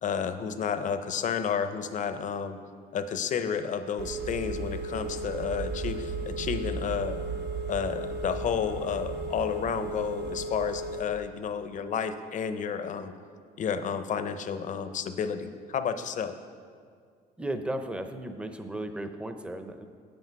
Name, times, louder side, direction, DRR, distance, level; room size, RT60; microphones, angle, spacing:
voice 1, 0.0-2.6 2.9-7.2 7.7-13.1 13.6-16.3, left 7 dB, 50° left, 10 dB, 0.6 m, -31 dB
Telephone, 4.0-11.0, right 3 dB, 80° right, 0.9 m, -35 dB
voice 2, 17.4-19.9, right 1 dB, 5° right, 8 dB, 0.6 m, -35 dB
8.6 x 8.1 x 4.6 m, 2.1 s
cardioid pair, 110°, 17 cm